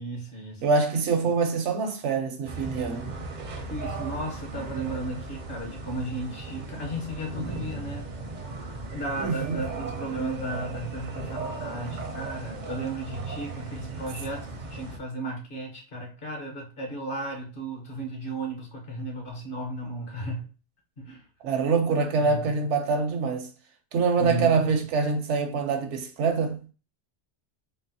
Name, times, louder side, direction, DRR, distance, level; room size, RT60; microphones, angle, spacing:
voice 1, 0.0-0.6 3.7-8.1 8.9-20.5 21.0-21.3 22.2-22.6 24.2-24.6, right 1 dB, 50° left, 1.0 m, -35 dB
voice 2, 0.6-3.1 9.2-9.6 21.4-23.5 23.9-26.7, right 4 dB, 75° right, 1.0 m, -25 dB
sound 1, 2.5-15.0, right 3 dB, 50° right, 0.6 m, -37 dB
3.9 x 2.1 x 2.6 m
omnidirectional pair, 1.2 m